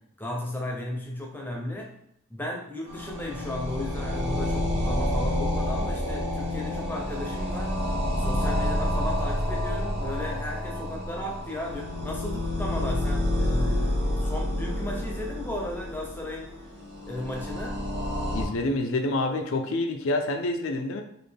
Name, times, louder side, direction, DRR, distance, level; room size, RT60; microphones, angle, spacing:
voice 1, 0.2-1.9 2.3-16.5 17.0-17.8, left 1 dB, 10° left, 0 dB, 0.6 m, -35 dB
sound 1, 2.9-18.5, left 1 dB, 50° right, 1.0 m, -29 dB
voice 2, 18.3-21.0, left 2 dB, 70° left, 5 dB, 0.4 m, -27 dB
4.1 x 2.5 x 3.3 m, 0.74 s
head